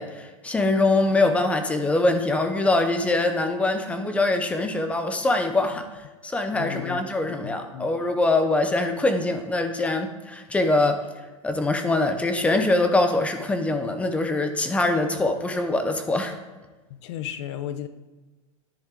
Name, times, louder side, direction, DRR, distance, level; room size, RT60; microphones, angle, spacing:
voice 1, 0.0-5.9 6.2-11.0 11.4-16.4, left 2 dB, 5° left, 7 dB, 0.6 m, -23 dB
voice 2, 6.6-7.9 16.9-17.9, left 11 dB, 55° left, 12 dB, 0.6 m, -35 dB
10.5 x 7.9 x 3.8 m, 1.2 s
supercardioid pair, 160°, 17 cm